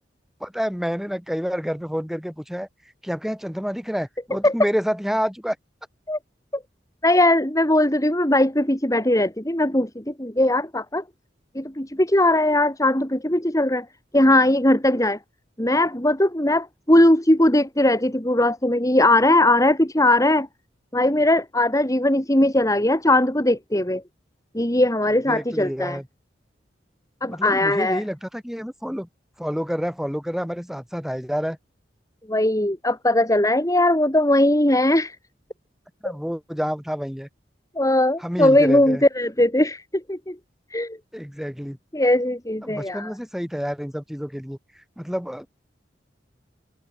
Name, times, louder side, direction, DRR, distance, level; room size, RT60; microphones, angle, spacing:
voice 1, 0.4-2.7 3.0-5.6 15.0-15.1 25.3-26.1 27.3-29.1 29.4-31.6 36.0-37.3 38.2-39.0 41.1-41.8 42.6-44.6 45.0-45.5, equal, ahead, 7.0 m, -28 dB
voice 2, 7.0-11.0 11.5-13.9 14.1-15.2 15.6-20.5 20.9-24.0 24.5-26.0 27.2-28.0 32.3-35.2 37.8-40.4 40.7-41.0 41.9-43.1, left 1 dB, 20° left, 4.0 m, -19 dB
head